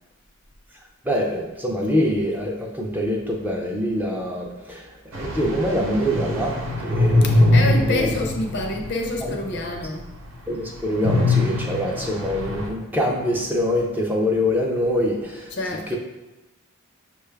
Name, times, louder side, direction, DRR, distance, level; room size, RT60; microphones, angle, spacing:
voice 1, 1.0-8.1 9.2-9.3 10.5-15.5 15.9-16.0, equal, 10° right, -1 dB, 0.4 m, -25 dB
sound 1, 5.1-9.4 9.8-9.9 11.0-12.7, left 2 dB, 65° right, 0.8 m, -22 dB
voice 2, 7.2-10.1 15.5-16.0, left 2 dB, 50° left, 2 dB, 0.5 m, -27 dB
6.1 x 2.3 x 3.3 m, 1.1 s
head